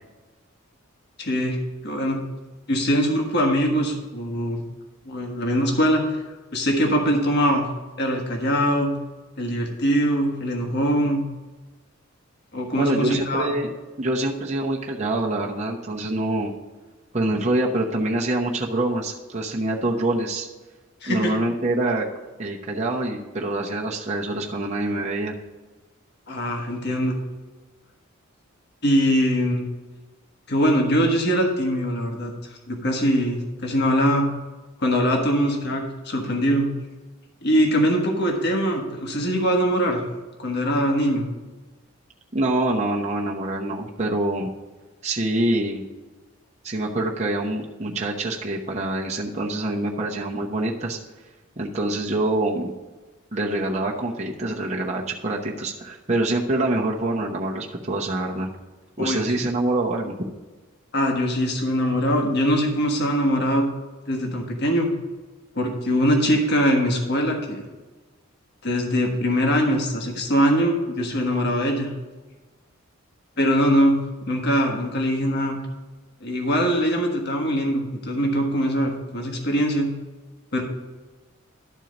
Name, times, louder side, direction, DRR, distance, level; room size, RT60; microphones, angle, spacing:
voice 1, 1.2-1.6 1.8-2.2 2.7-4.6 5.1-6.2 6.5-7.7 8.0-8.9 9.4-11.2 12.5-13.5 21.0-21.3 26.3-27.2 28.8-29.6 30.5-32.3 32.7-34.3 34.8-36.7 37.4-40.0 40.4-41.3 59.0-59.4 60.9-63.7 64.1-64.9 65.5-67.6 68.6-71.9 73.4-74.0 74.3-75.6 76.2-79.9 80.5-80.6, equal, 50° left, 1 dB, 1.4 m, -22 dB
voice 2, 12.8-13.7 14.0-16.5 17.1-20.5 21.1-22.1 22.4-25.3 42.3-44.5 45.0-45.9 46.6-51.0 51.6-52.7 53.3-58.5 59.0-60.1, right 1 dB, 30° right, -2 dB, 0.9 m, -25 dB
12.0 x 4.5 x 5.3 m, 1.2 s
head